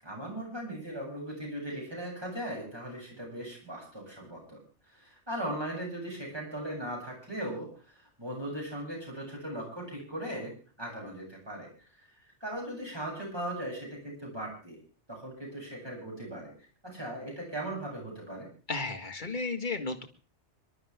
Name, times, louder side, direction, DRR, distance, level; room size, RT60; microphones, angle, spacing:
voice 1, 0.0-4.6 4.9-10.5 10.8-11.7 12.4-14.8 15.1-16.5 16.8-18.5, right 1 dB, 20° right, -2 dB, 8.1 m, -38 dB
voice 2, 18.7-20.0, left 3 dB, 40° left, 5 dB, 2.0 m, -33 dB
25.5 x 12.5 x 3.6 m, 0.39 s
omnidirectional pair, 1.2 m